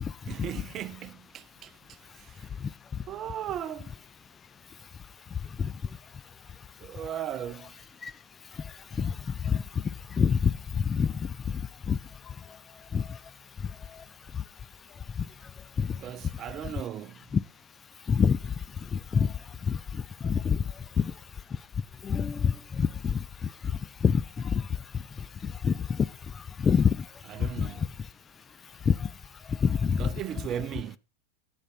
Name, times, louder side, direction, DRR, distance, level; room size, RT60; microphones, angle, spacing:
voice 1, 0.3-1.7 2.2-2.5 3.1-3.9 6.8-7.7 15.9-17.2 27.3-27.9 30.0-31.0, right 10 dB, 35° right, 0.7 m, -37 dB
voice 2, 10.2-10.5 10.9-11.1 11.9-12.0 12.9-13.0 15.8-15.9 17.3-17.4 18.1-18.4 19.1-19.3 19.7-19.8 20.2-20.6 21.0-21.1 22.0-23.2 24.0-24.2 24.5-24.7 25.4-26.1 26.6-27.0 27.6-27.7 28.9-29.1 29.6-30.1, left 6 dB, 20° left, 0.5 m, -25 dB
9.9 x 9.7 x 4.3 m
figure-of-eight pair, 90°, 0 cm